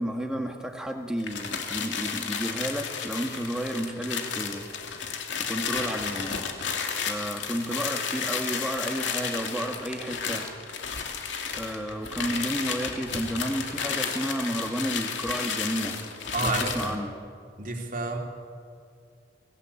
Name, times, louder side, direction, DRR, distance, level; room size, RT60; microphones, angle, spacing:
voice 1, 0.0-4.7 5.4-6.4 6.9-10.5 11.5-16.0 16.4-17.2, equal, 5° right, 3 dB, 1.8 m, -32 dB
sound 1, 1.2-17.0, left 6 dB, 80° left, 2.5 m, -32 dB
voice 2, 16.3-17.0 17.6-18.2, right 3 dB, 45° right, 2 dB, 2.9 m, -29 dB
24.5 x 17.0 x 8.5 m, 2.3 s
head